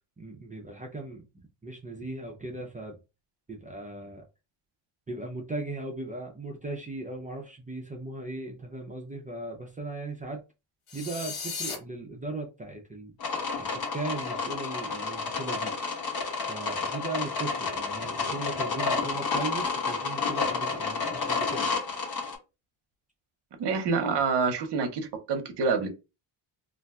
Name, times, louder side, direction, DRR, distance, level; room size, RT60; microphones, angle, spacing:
voice 1, 0.2-1.3 1.6-3.0 3.5-4.3 5.1-10.4 10.9-13.1 13.6-15.7 16.4-21.7, right 2 dB, 20° right, 0.4 m, -38 dB
sound 1, 10.9-11.8, left 5 dB, 80° left, 1.2 m, -35 dB
sound 2, 13.2-22.3, left 4 dB, 45° left, 1.1 m, -30 dB
voice 2, 23.6-25.9, right 5 dB, 55° right, 0.8 m, -27 dB
2.6 x 2.1 x 3.4 m
cardioid pair, 155°, 50 cm